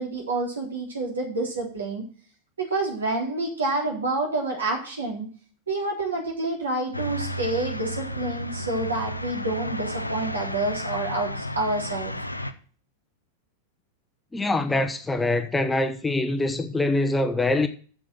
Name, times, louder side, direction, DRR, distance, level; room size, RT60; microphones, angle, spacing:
voice 1, 0.0-2.0 2.6-5.3 5.7-12.1, right 2 dB, 75° right, 3.7 m, -28 dB
sound 1, 6.9-12.5, left 1 dB, 85° left, 0.7 m, -32 dB
voice 2, 14.3-17.7, left 2 dB, 10° left, 1.0 m, -24 dB
7.6 x 7.2 x 7.6 m
figure-of-eight pair, 90°, 0 cm